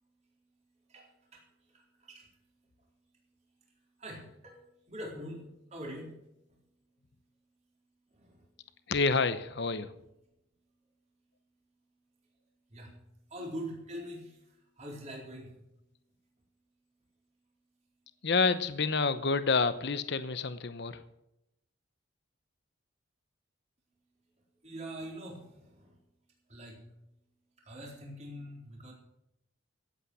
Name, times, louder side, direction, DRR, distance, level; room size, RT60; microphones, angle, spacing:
voice 1, 0.9-2.3 4.0-4.6 4.9-6.1 6.5-6.6 8.1-8.4 12.7-12.9 13.3-15.5 24.6-25.9 26.5-26.8 27.6-28.9, equal, 35° right, -1 dB, 4.2 m, -44 dB
voice 2, 8.9-9.9 18.2-21.0, left 4 dB, 55° left, 12 dB, 0.8 m, -28 dB
16.5 x 8.8 x 6.3 m, 0.84 s
head